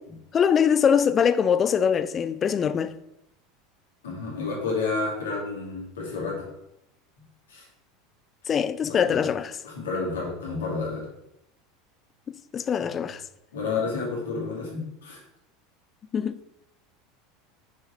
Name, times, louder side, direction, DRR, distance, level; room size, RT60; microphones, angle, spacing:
voice 1, 0.3-3.0 8.5-9.5 12.5-13.2 16.1-16.3, left 7 dB, 30° left, 0.4 m, -22 dB
voice 2, 4.0-6.5 7.5-7.7 8.8-9.2 9.6-11.1 12.8-12.9 13.5-15.2, left 4 dB, 75° left, 2.2 m, -30 dB
5.8 x 4.8 x 4.3 m
figure-of-eight pair, 80°, 0 cm